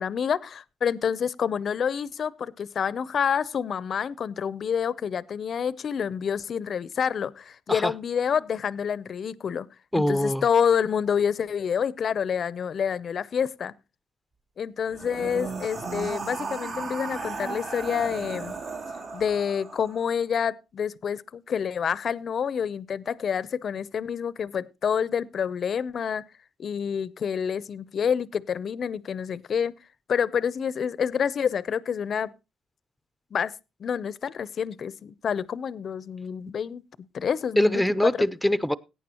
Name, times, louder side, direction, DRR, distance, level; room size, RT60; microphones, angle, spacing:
voice 1, 0.0-9.7 9.9-13.7 14.6-18.5 19.1-26.2 26.6-29.7 30.1-32.3 33.3-33.5 33.8-36.8 37.1-38.1, left 7 dB, 55° left, 0.6 m, -28 dB
voice 2, 9.9-10.4 37.6-38.7, left 1 dB, ahead, 0.6 m, -23 dB
sound 1, 14.9-20.1, right 4 dB, 70° right, 3.1 m, -35 dB
17.5 x 9.2 x 2.9 m
cardioid pair, 90°, 0 cm